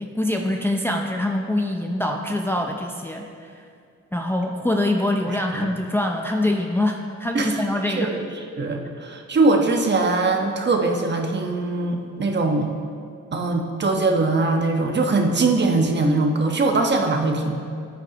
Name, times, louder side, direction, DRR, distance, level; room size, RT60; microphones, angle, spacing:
voice 1, 0.0-3.6 4.1-8.1, left 1 dB, 10° left, 2 dB, 0.6 m, -24 dB
voice 2, 7.3-8.3 8.6-12.7 13.3-17.6, right 3 dB, 35° right, 3 dB, 1.2 m, -21 dB
14.0 x 9.2 x 2.9 m, 2.3 s
cardioid pair, 90°, 30 cm